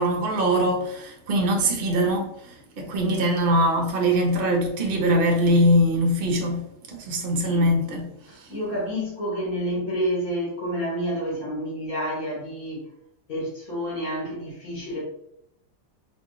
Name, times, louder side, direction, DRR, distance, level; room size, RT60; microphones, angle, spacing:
voice 1, 0.0-8.1 8.4-8.5, equal, 55° right, 0.6 m, -22 dB
voice 2, 7.4-7.7 8.3-12.8 13.3-15.0, equal, 55° left, 1.9 m, -29 dB
4.2 x 2.6 x 3.1 m
omnidirectional pair, 2.0 m